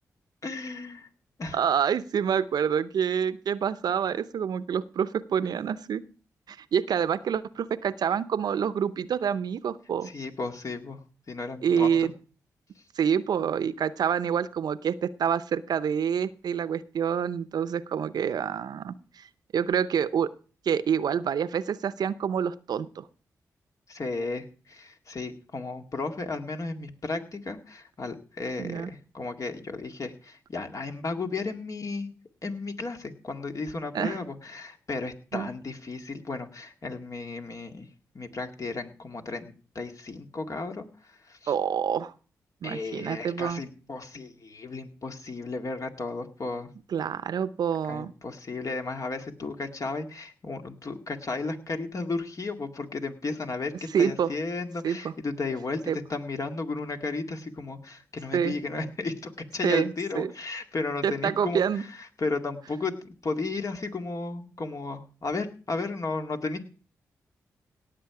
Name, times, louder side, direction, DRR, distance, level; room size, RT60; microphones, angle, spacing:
voice 1, 0.4-1.1 1.4-1.6 10.0-11.0 11.3-11.9 23.9-32.1 32.4-37.9 38.1-41.5 42.6-46.7 47.9-55.8 56.1-66.7, left 3 dB, 50° left, 5 dB, 2.1 m, -34 dB
voice 2, 1.5-6.0 6.5-10.1 11.6-12.1 13.0-19.2 19.5-20.3 20.7-23.1 28.6-28.9 33.9-34.2 35.3-35.5 41.5-42.1 42.6-43.6 46.9-48.1 53.9-54.3 54.8-55.1 55.9-56.0 58.3-58.5 59.6-60.3 61.0-61.8, right 8 dB, 75° right, 16 dB, 0.7 m, -27 dB
17.5 x 7.4 x 4.8 m, 0.38 s
supercardioid pair, 40°, 7 cm